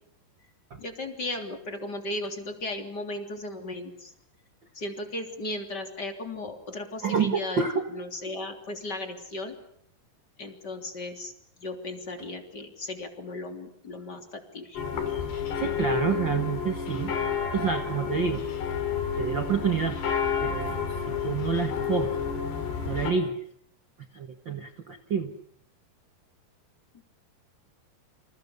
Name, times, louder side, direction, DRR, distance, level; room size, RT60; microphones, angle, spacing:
voice 1, 0.8-4.1 4.7-9.5 10.4-11.3 11.6-14.8, left 2 dB, 25° left, 5 dB, 3.3 m, -36 dB
voice 2, 7.0-7.8 15.5-17.1 17.5-18.4 19.1-20.0 20.4-22.2 22.9-23.4 24.1-25.3, right 6 dB, 65° right, 6 dB, 1.1 m, -28 dB
sound 1, 14.8-23.1, left 7 dB, 85° left, 5.3 m, -30 dB
28.5 x 27.0 x 7.0 m, 0.67 s
omnidirectional pair, 4.7 m